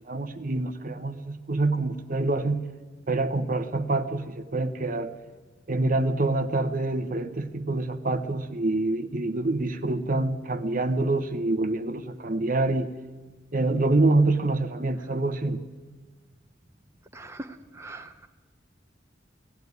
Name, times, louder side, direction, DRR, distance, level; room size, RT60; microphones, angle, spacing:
voice 1, 0.1-2.7 3.1-5.1 5.7-12.9 13.5-15.6, right 2 dB, 45° right, 9 dB, 0.9 m, -26 dB
voice 2, 17.1-18.3, right 2 dB, 15° right, 5 dB, 0.9 m, -41 dB
18.0 x 15.5 x 9.5 m, 1.3 s
head